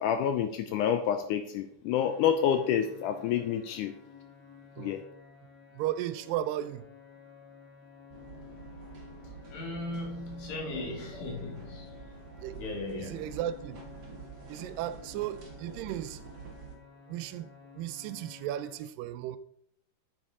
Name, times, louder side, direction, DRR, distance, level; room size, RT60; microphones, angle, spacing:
voice 1, 0.0-3.9 4.8-5.0, left 9 dB, 80° left, 1.8 m, -28 dB
sound 1, 1.9-18.8, left 6 dB, 30° left, 2.0 m, -53 dB
voice 2, 5.7-6.8 12.4-12.6 13.0-13.8 14.5-16.2 17.1-17.5 17.8-19.4, right 12 dB, 80° right, 2.2 m, -35 dB
sound 2, 8.1-16.8, right 5 dB, 60° right, 1.1 m, -48 dB
voice 3, 9.2-12.0 12.6-13.3, left 2 dB, 55° left, 2.9 m, -38 dB
8.8 x 7.8 x 3.7 m
omnidirectional pair, 4.1 m